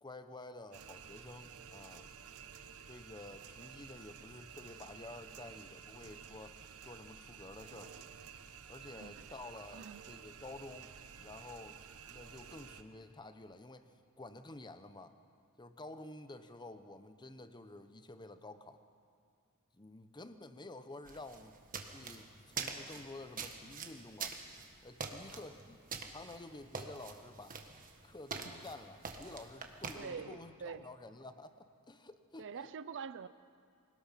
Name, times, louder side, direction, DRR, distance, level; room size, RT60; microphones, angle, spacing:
voice 1, 0.0-2.1 2.9-8.0 8.7-15.2 15.6-18.8 19.7-21.6 21.9-24.4 24.8-25.8 26.1-27.6 28.0-32.7, left 2 dB, 20° left, 10 dB, 0.9 m, -51 dB
sound 1, 0.7-12.8, right 7 dB, 70° right, 1.0 m, -52 dB
voice 2, 9.0-9.3 9.7-10.0 28.4-28.5 30.0-30.9 32.4-33.3, right 6 dB, 55° right, 14 dB, 0.5 m, -45 dB
sound 2, 21.1-30.0, right 5 dB, 40° right, 1.6 m, -45 dB
24.5 x 18.5 x 5.8 m, 2.3 s
head